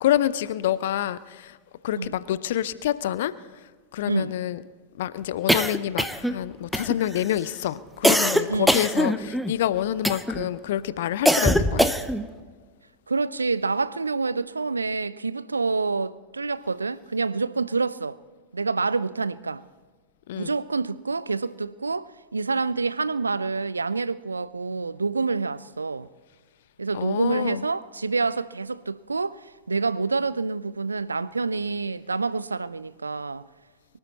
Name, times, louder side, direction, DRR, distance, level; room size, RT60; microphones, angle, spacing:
voice 1, 0.0-1.6 1.8-3.3 3.9-4.6 5.0-11.9 20.3-20.5 26.9-27.6, left 12 dB, 55° left, 0.6 m, -27 dB
sound 1, 5.5-6.4 6.7-7.2 8.0-9.5 10.0-10.5 11.3-12.3, equal, ahead, 0.7 m, -22 dB
voice 2, 13.1-18.2 18.5-19.6 20.3-26.1 26.8-33.4, right 4 dB, 80° right, 0.4 m, -27 dB
23.5 x 12.5 x 4.1 m
figure-of-eight pair, 90°, 0 cm